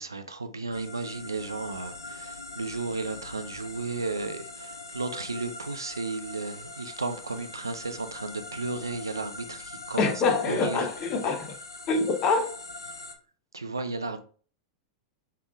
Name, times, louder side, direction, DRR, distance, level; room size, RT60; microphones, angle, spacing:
voice 1, 0.0-10.1 10.5-10.9 13.5-14.2, right 3 dB, 85° right, 0.4 m, -34 dB
sound 1, 0.7-13.2, left 2 dB, 85° left, 0.6 m, -42 dB
voice 2, 10.0-11.6 11.9-12.5, left 4 dB, 40° left, 1.0 m, -25 dB
5.5 x 3.5 x 2.4 m
figure-of-eight pair, 95°, 2 cm